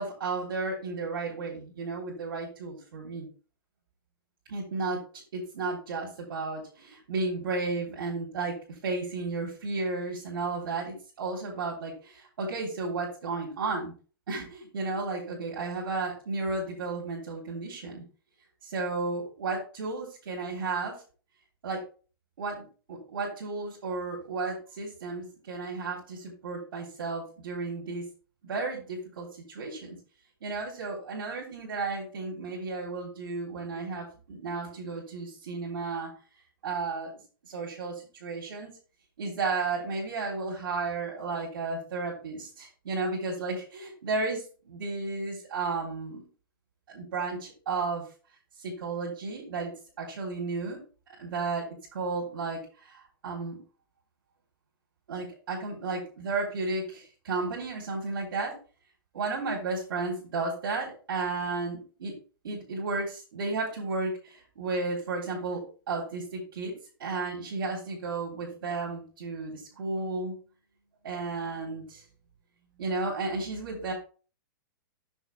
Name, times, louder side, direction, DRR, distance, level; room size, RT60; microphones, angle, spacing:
voice 1, 0.0-3.3 4.5-13.9 14.3-18.0 18.6-20.9 21.6-21.8 22.4-28.0 28.4-30.0 30.4-36.1 36.6-37.1 37.4-38.7 39.2-46.3 46.9-48.0 48.6-50.8 51.2-51.7 51.9-53.6 55.1-58.6 59.1-62.1 62.4-66.7 67.0-70.3 71.0-72.0 72.8-73.9, right 3 dB, 75° right, -4 dB, 3.6 m, -33 dB
7.2 x 7.1 x 3.4 m, 0.37 s
hypercardioid pair, 165°, 12 cm